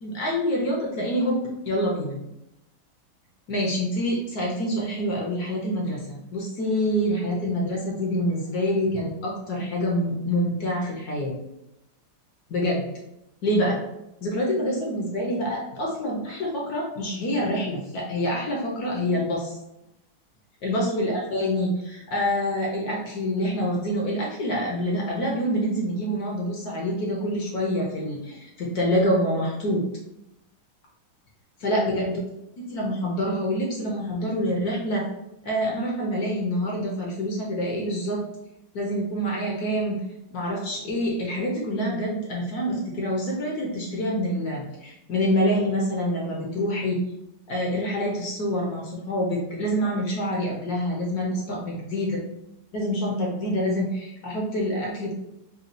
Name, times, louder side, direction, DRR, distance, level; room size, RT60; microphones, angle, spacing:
voice 1, 0.0-1.4 1.7-2.2 3.5-11.4 12.5-12.9 13.4-13.8 14.2-19.6 20.6-29.8 31.6-32.1 32.7-35.0 35.4-38.2 38.7-40.0 40.3-47.0 47.5-52.2 52.7-55.1, equal, 60° left, -2 dB, 1.0 m, -26 dB
4.1 x 2.2 x 2.5 m, 0.86 s
omnidirectional pair, 2.2 m